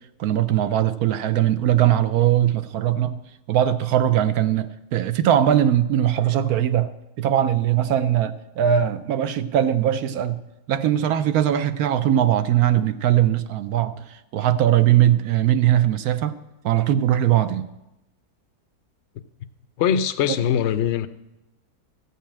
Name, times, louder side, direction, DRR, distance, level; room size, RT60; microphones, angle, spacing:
voice 1, 0.2-3.2 3.5-6.9 7.2-10.4 10.7-16.3 16.6-17.7, right 11 dB, 70° right, 1.0 m, -20 dB
voice 2, 19.8-21.1, left 9 dB, 65° left, 0.6 m, -21 dB
14.0 x 5.5 x 8.5 m
omnidirectional pair, 1.8 m